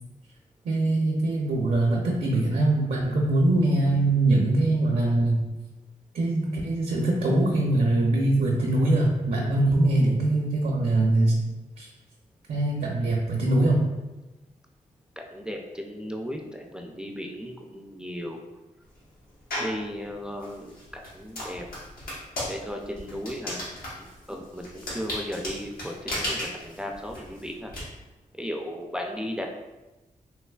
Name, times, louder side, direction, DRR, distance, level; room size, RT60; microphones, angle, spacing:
voice 1, 0.6-5.4 6.1-11.4 11.8-11.9 12.5-13.8, right 2 dB, 70° right, -1 dB, 0.5 m, -23 dB
voice 2, 15.2-18.4 19.6-21.7 22.5-23.6 24.0-27.7 28.4-29.5, equal, 5° right, 1 dB, 0.3 m, -36 dB
sound 1, 19.5-19.8 20.4-27.8, left 1 dB, 80° left, 1.0 m, -35 dB
3.2 x 3.0 x 2.2 m, 1.1 s
cardioid pair, 90°, 15 cm